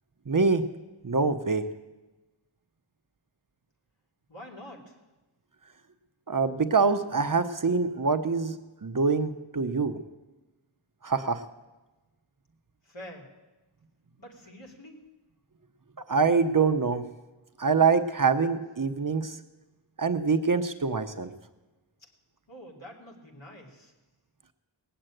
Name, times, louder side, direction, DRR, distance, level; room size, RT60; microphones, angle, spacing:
voice 1, 0.3-0.7 1.0-1.6 6.3-10.0 11.0-11.4 16.1-17.0 17.6-19.4 20.0-21.3, right 4 dB, 40° right, 8 dB, 0.8 m, -25 dB
voice 2, 4.3-5.0 12.8-13.3 14.2-15.0 22.5-23.9, equal, 65° left, 0 dB, 2.8 m, -46 dB
18.5 x 7.8 x 9.0 m, 1.1 s
wide cardioid pair, 70°, 49 cm